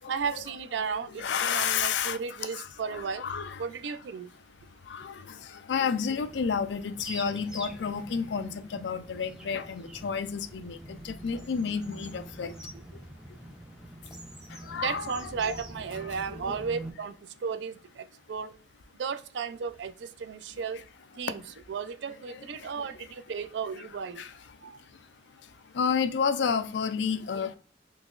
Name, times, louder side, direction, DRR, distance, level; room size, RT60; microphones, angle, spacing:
voice 1, 0.1-3.3 3.6-4.3 14.7-17.1 17.4-18.5 19.0-20.8 21.2-21.4 21.7-24.2 24.6-24.8, right 6 dB, 80° right, 0.4 m, -34 dB
voice 2, 1.2-2.2 2.5-2.7 2.9-3.6 4.8-12.6 12.9-13.0 14.5-15.1 15.5-15.6 16.4-16.6 22.6-22.9 24.2-24.3 25.4-27.6, left 6 dB, 85° left, 0.4 m, -31 dB
sound 1, 6.1-16.9, right 1 dB, 5° right, 0.4 m, -45 dB
3.9 x 2.9 x 2.4 m
head